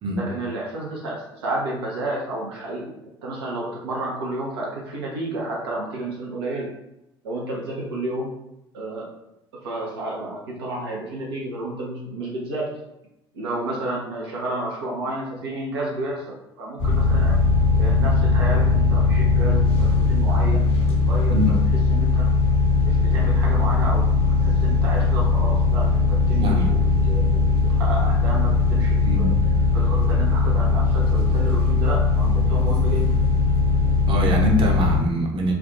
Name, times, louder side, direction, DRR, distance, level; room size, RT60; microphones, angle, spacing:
voice 1, 0.1-2.9 3.2-6.7 7.2-8.3 8.7-9.1 9.6-12.7 13.3-17.3 17.8-21.6 21.9-22.3 22.8-29.3 29.7-33.1, right 2 dB, 75° right, -4 dB, 0.7 m, -31 dB
sound 1, 16.8-35.0, left 3 dB, 45° left, 0.8 m, -19 dB
voice 2, 26.4-26.7 29.0-29.3 34.1-35.5, equal, 40° right, 0 dB, 0.8 m, -23 dB
3.4 x 2.4 x 2.6 m, 0.87 s
figure-of-eight pair, 55°, 13 cm